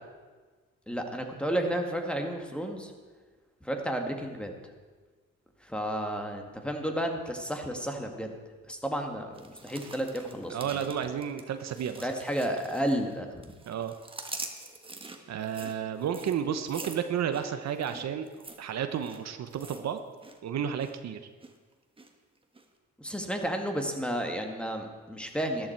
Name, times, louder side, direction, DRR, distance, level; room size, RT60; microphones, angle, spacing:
voice 1, 0.9-2.9 3.6-4.5 5.6-8.3 8.7-10.8 12.0-13.5 23.0-25.7, equal, 5° left, 3 dB, 1.8 m, -32 dB
sound 1, 9.3-13.2 13.4-20.4 20.6-21.0 21.4-22.1 22.5-22.6, right 3 dB, 15° right, 1.4 m, -45 dB
voice 2, 10.5-12.1 13.7-13.9 15.3-18.3 18.6-20.0 20.4-21.2, right 8 dB, 60° right, 8 dB, 0.9 m, -32 dB
13.5 x 11.5 x 4.5 m, 1.4 s
cardioid pair, 90°, 30 cm